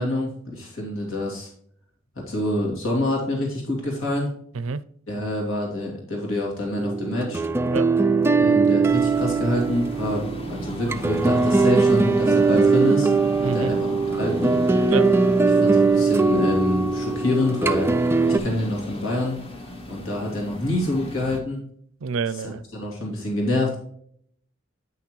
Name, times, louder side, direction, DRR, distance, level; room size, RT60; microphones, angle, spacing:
voice 1, 0.0-1.5 2.2-4.3 5.1-7.4 8.4-13.1 13.4-14.5 15.6-17.9 18.4-19.4 19.9-21.6 22.3-23.8, left 1 dB, 75° left, -1 dB, 2.4 m, -26 dB
sound 1, 6.8-18.4, right 4 dB, 10° right, 0.3 m, -20 dB
voice 2, 7.6-7.9 13.4-13.7 14.8-15.1 22.0-22.6, right 5 dB, 80° right, 17 dB, 0.5 m, -28 dB
sound 2, 8.9-21.4, left 1 dB, 30° left, 1.2 m, -37 dB
9.3 x 5.9 x 3.1 m, 0.66 s
head